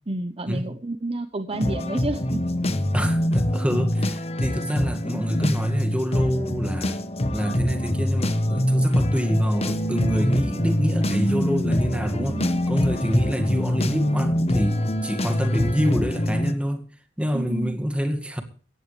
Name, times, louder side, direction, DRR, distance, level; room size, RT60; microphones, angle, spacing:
voice 1, 0.1-2.4 12.1-12.6 17.3-17.7, right 2 dB, 30° right, 0.9 m, -30 dB
sound 1, 1.5-16.5, left 1 dB, 35° left, 1.1 m, -24 dB
voice 2, 2.9-7.0 7.3-12.4 12.7-16.9 17.2-18.4, equal, 5° right, 2.1 m, -27 dB
17.0 x 14.0 x 3.3 m
head